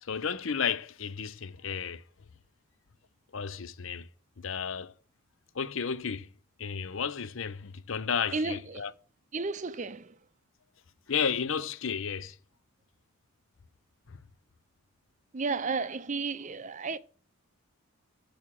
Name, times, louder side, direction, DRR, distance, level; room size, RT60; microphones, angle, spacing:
voice 1, 0.0-2.0 3.3-4.1 4.4-4.9 5.5-6.3 6.6-8.9 11.1-12.4 14.1-14.2, left 6 dB, 65° left, 0.7 m, -32 dB
voice 2, 8.3-8.9 9.3-10.2 15.3-17.0, right 4 dB, 35° right, 0.5 m, -33 dB
7.1 x 6.4 x 7.4 m
head